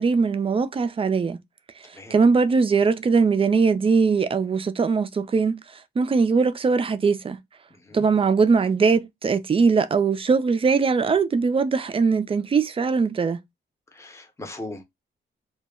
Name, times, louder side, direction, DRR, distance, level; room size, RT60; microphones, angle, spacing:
voice 1, 0.0-1.4 2.1-5.6 6.0-7.4 7.9-13.4, right 5 dB, 25° right, 0.4 m, -21 dB
voice 2, 7.7-8.0 13.9-14.8, left 2 dB, 15° left, 0.7 m, -39 dB
2.3 x 2.0 x 3.5 m
cardioid pair, 95°, 20 cm